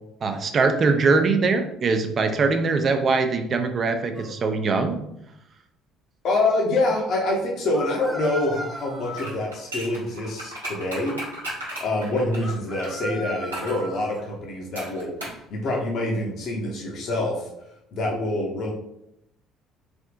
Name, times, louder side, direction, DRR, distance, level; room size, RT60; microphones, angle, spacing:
voice 1, 0.2-5.0, right 4 dB, 40° right, 7 dB, 0.5 m, -22 dB
sound 1, 4.1-4.3 7.7-9.5 12.4-14.2, equal, 5° left, 0.6 m, -36 dB
voice 2, 6.2-11.2 11.8-15.1 15.5-17.5 17.9-18.7, left 2 dB, 50° left, -1 dB, 0.7 m, -26 dB
sound 2, 9.1-12.9 13.5-13.8 14.8-15.4 15.7-15.8, right 1 dB, 85° right, 0.9 m, -35 dB
3.4 x 2.7 x 2.5 m, 0.78 s
figure-of-eight pair, 55°, 0 cm